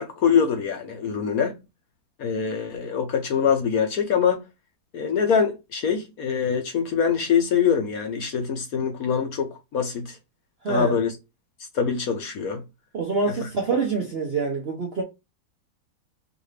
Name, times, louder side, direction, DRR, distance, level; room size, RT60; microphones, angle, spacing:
voice 1, 0.0-1.5 2.2-4.4 4.9-10.2 10.7-11.1 11.7-12.6 13.4-13.5, left 7 dB, 60° left, 1.0 m, -24 dB
voice 2, 10.6-10.9 12.9-15.0, right 4 dB, 55° right, 0.7 m, -25 dB
4.8 x 2.6 x 3.2 m
omnidirectional pair, 2.0 m